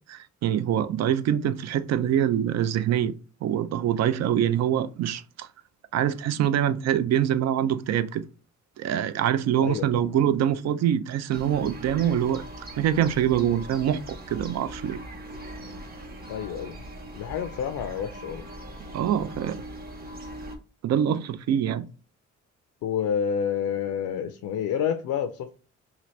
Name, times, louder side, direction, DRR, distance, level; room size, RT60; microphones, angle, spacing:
voice 1, 0.1-3.1 3.4-5.5 5.9-8.2 8.8-12.4 12.8-15.0 18.9-19.6 20.8-21.8, right 10 dB, 60° right, 0.4 m, -24 dB
voice 2, 9.6-10.1 16.3-16.8 17.2-18.5 22.8-25.6, left 8 dB, 75° left, 0.5 m, -29 dB
sound 1, 11.3-20.6, right 1 dB, 30° right, 0.8 m, -41 dB
2.8 x 2.5 x 3.1 m
cardioid pair, 90°, 30 cm